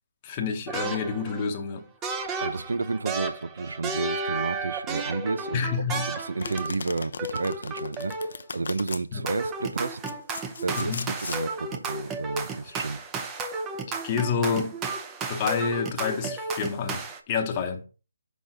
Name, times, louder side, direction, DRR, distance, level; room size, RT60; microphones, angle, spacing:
voice 1, 0.2-1.9 5.5-6.1 9.1-9.2 10.7-11.1 13.9-14.8 15.3-17.8, left 5 dB, 20° left, 0.9 m, -28 dB
sound 1, 0.7-1.5 2.0-6.9 7.2-8.4 9.3-17.2, right 3 dB, 10° right, 0.6 m, -33 dB
voice 2, 2.4-10.0 10.6-13.0, right 3 dB, 75° right, 0.6 m, -31 dB
Domestic sounds home sounds, 6.4-9.0 9.8-11.4, left 5 dB, 60° left, 0.5 m, -38 dB
6.1 x 5.3 x 3.7 m
hypercardioid pair, 165°, 0 cm